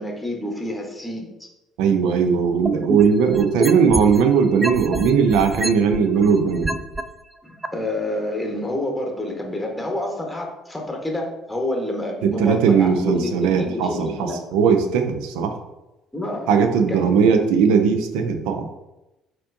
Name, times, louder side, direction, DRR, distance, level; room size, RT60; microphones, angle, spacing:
voice 1, 0.0-1.5 7.4-14.4 16.1-16.5 16.9-17.2, left 1 dB, 5° left, 1 dB, 1.1 m, -28 dB
voice 2, 1.8-6.7 12.4-15.5 16.5-18.7, right 6 dB, 70° right, 7 dB, 0.5 m, -18 dB
sound 1, 2.7-4.2 4.6-7.0 7.6-7.7, right 1 dB, 10° right, 0.3 m, -27 dB
4.3 x 3.7 x 2.6 m, 0.95 s
hypercardioid pair, 55°, 0 cm